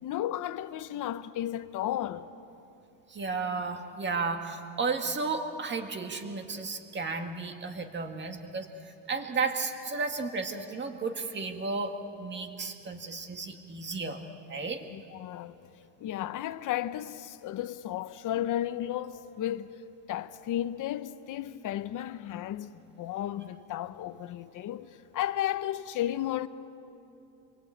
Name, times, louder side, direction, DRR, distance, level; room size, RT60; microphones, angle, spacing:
voice 1, 0.0-2.3 14.9-15.6 16.0-26.5, left 12 dB, 40° left, 0.9 m, -34 dB
voice 2, 3.1-14.2 14.5-14.9, right 4 dB, 20° right, 2.0 m, -33 dB
28.0 x 22.5 x 8.7 m
cardioid pair, 140°, 50 cm